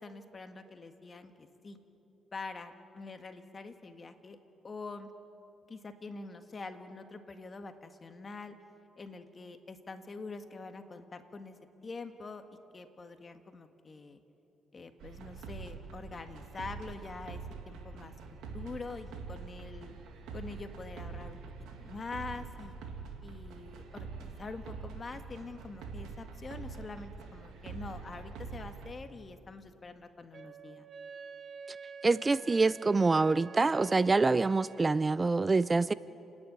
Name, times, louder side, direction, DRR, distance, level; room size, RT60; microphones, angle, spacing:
voice 1, 0.0-1.8 2.3-4.4 4.6-5.1 5.7-8.5 9.0-11.6 11.8-12.4 12.7-14.2 14.7-18.1 18.5-20.0 20.3-21.4 21.8-22.8 23.2-30.9, left 3 dB, 35° left, 7 dB, 1.6 m, -45 dB
sound 1, 15.0-28.9, right 5 dB, 85° right, 2.4 m, -45 dB
Wind instrument woodwind instrument, 30.3-35.0, right 5 dB, 50° right, 0.9 m, -49 dB
voice 2, 32.0-35.9, right 3 dB, 25° right, 17 dB, 0.4 m, -26 dB
30.0 x 10.5 x 9.4 m, 2.9 s
cardioid pair, 90°, 0 cm